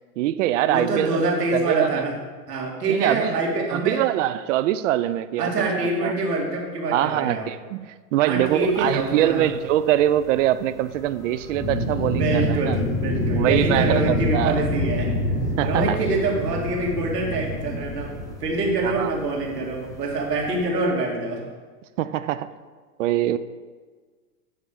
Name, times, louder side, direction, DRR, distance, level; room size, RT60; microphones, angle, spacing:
voice 1, 0.2-1.2 1.5-2.0 2.9-3.4 3.7-6.2 6.9-12.8 13.4-14.6 15.6-16.0 18.8-19.1 22.0-22.5 23.0-23.4, right 13 dB, 55° right, 14 dB, 0.5 m, -23 dB
voice 2, 0.7-2.1 2.5-4.0 5.4-7.5 8.2-9.5 12.2-15.1 15.6-18.1 18.4-21.4, right 2 dB, 90° right, -1 dB, 2.5 m, -25 dB
sound 1, 8.4-20.7, left 1 dB, 5° left, 1.1 m, -28 dB
10.0 x 3.5 x 7.1 m, 1.5 s
hypercardioid pair, 130°, 46 cm